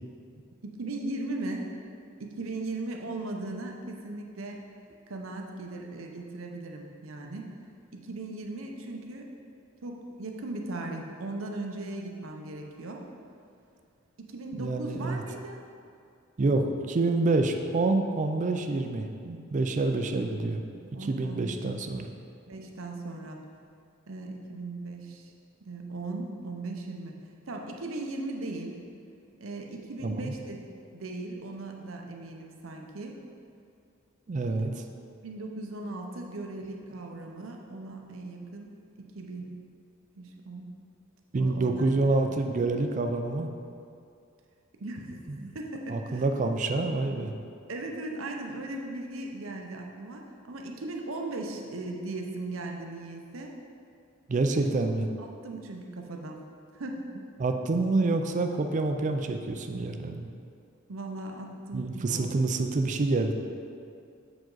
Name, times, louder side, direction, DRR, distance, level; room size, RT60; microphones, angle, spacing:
voice 1, 0.6-1.6 2.2-4.6 5.1-7.5 7.9-9.3 9.8-13.0 14.2-15.6 20.9-21.6 22.5-23.4 24.1-25.3 25.6-27.1 27.5-28.8 29.4-30.6 30.9-33.2 35.2-39.4 40.2-40.7 41.4-41.9 42.3-42.4 44.8-45.2 45.5-46.2 47.7-53.5 55.2-56.4 56.7-57.0 60.9-62.4, right 2 dB, 90° right, 2 dB, 0.8 m, -38 dB
voice 2, 14.6-15.2 16.4-20.6 21.0-22.1 30.0-30.3 34.3-34.8 41.3-43.5 45.3-45.5 45.9-47.3 54.3-55.1 57.4-60.3 61.7-63.3, right 3 dB, 40° right, 5 dB, 0.4 m, -27 dB
7.4 x 5.0 x 3.9 m, 2.4 s
head